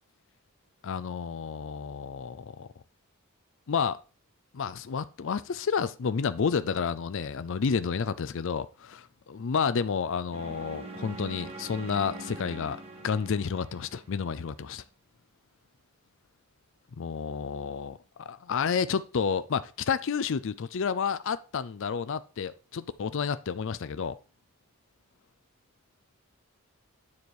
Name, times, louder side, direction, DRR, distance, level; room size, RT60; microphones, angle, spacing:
voice 1, 0.8-2.7 3.7-4.0 4.5-12.8 13.0-14.8 17.0-24.2, left 6 dB, 60° left, 0.5 m, -30 dB
sound 1, 10.3-14.5, right 2 dB, 30° right, 1.2 m, -43 dB
9.5 x 4.5 x 4.7 m
head